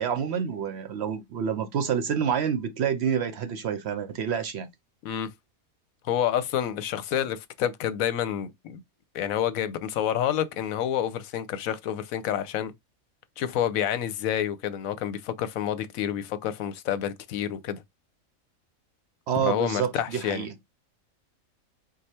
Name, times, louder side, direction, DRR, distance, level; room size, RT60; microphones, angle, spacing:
voice 1, 0.0-4.7 19.3-20.5, right 7 dB, 65° right, 0.7 m, -28 dB
voice 2, 6.0-8.8 9.1-12.7 13.4-17.8 19.4-20.5, left 10 dB, 80° left, 1.0 m, -28 dB
4.8 x 2.3 x 4.2 m
omnidirectional pair, 1.4 m